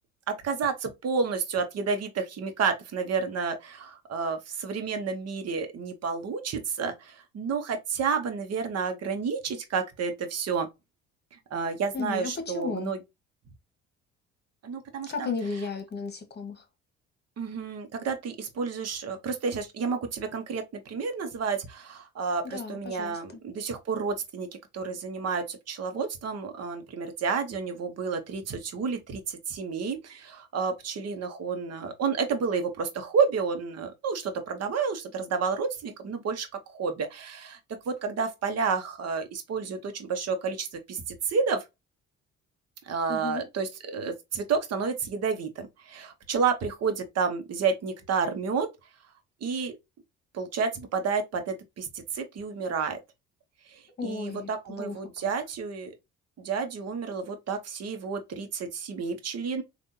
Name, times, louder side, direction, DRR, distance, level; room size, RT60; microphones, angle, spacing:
voice 1, 0.3-10.7 11.3-13.0 14.6-15.3 17.4-24.5 24.7-37.6 37.8-41.6 42.8-48.7 49.4-49.8 50.3-53.0 53.7-55.9 56.4-59.6, right 5 dB, 50° right, 1.1 m, -30 dB
voice 2, 11.9-12.9 15.1-16.6 22.4-23.2 43.1-43.4 54.0-54.5 54.8-54.9, left 4 dB, 30° left, 1.3 m, -34 dB
3.5 x 2.6 x 2.7 m
hypercardioid pair, 60°, 32 cm